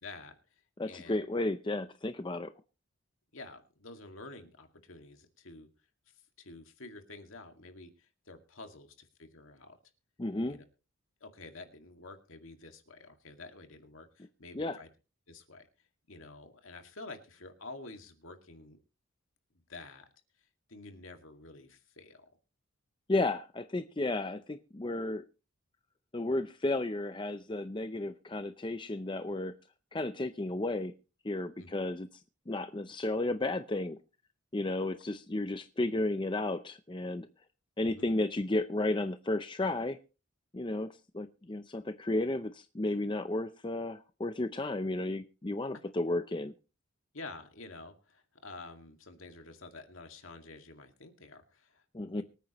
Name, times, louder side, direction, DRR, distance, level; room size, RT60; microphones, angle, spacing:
voice 1, 0.0-1.2 3.3-5.7 6.4-9.8 10.5-10.6 11.2-14.9 15.3-15.7 16.1-18.8 19.7-20.1 20.7-22.3 31.6-31.7 37.8-38.1 47.1-51.8 52.1-52.2, left 3 dB, 70° left, 5 dB, 2.1 m, -49 dB
voice 2, 0.8-2.5 10.2-10.6 14.5-14.8 23.1-25.2 26.1-29.5 29.9-30.9 31.2-32.1 32.5-34.0 34.5-37.3 37.8-40.0 40.5-40.9 41.1-46.5 51.9-52.2, left 2 dB, 20° left, 10 dB, 0.5 m, -33 dB
24.5 x 9.2 x 3.0 m, 0.33 s
head